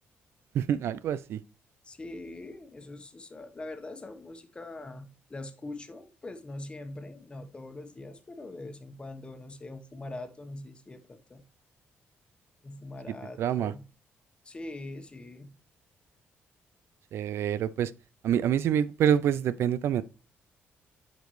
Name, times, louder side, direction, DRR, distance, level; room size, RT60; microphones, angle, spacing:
voice 1, 0.5-1.4 13.4-13.7 17.1-17.9 18.2-20.0, right 9 dB, 70° right, 0.4 m, -26 dB
voice 2, 1.8-11.4 12.6-13.9 14.4-15.5, left 2 dB, 25° left, 1.1 m, -42 dB
9.1 x 5.2 x 3.1 m
cardioid pair, 105°, 4 cm